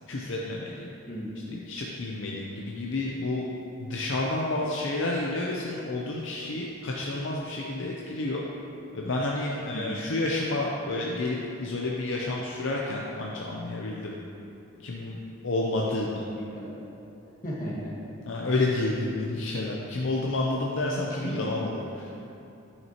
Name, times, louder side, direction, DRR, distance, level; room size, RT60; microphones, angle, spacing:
voice 1, 0.1-0.9 1.5-3.4 3.8-8.4 8.9-14.2 14.8-15.2 15.4-16.3 18.3-22.1, left 2 dB, 65° left, -3 dB, 0.6 m, -30 dB
voice 2, 16.3-16.7 17.4-18.1 21.1-21.4, equal, 40° left, -5 dB, 1.4 m, -35 dB
9.2 x 5.9 x 2.9 m, 2.8 s
head